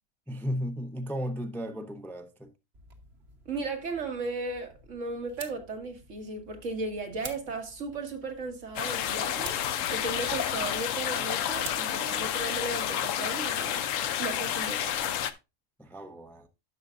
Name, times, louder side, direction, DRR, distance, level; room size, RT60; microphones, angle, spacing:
voice 1, 0.3-2.5 15.8-16.5, equal, ahead, 0.5 m, -35 dB
sound 1, 2.7-13.1, right 4 dB, 55° right, 1.4 m, -50 dB
voice 2, 3.5-9.6 9.9-13.8 14.2-15.0, right 3 dB, 75° right, 1.9 m, -36 dB
sound 2, 8.8-15.3, left 10 dB, 85° left, 1.0 m, -30 dB
11.0 x 6.5 x 2.4 m
omnidirectional pair, 1.3 m